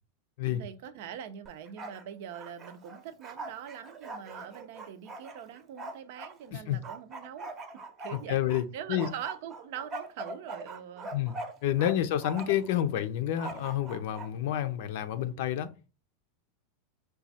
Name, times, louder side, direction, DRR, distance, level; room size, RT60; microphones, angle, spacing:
voice 1, 0.4-7.5 8.0-8.4 8.7-11.1 11.8-12.1, right 9 dB, 60° right, 0.6 m, -43 dB
Bark, 1.5-2.0 2.3-6.3 6.8-8.6 9.0-11.9 12.2-12.7 13.4-14.3, right 2 dB, 25° right, 0.7 m, -42 dB
voice 2, 8.1-9.1 11.1-11.3 11.6-15.7, left 11 dB, 60° left, 0.5 m, -29 dB
4.9 x 2.3 x 4.1 m
supercardioid pair, 155°, 0 cm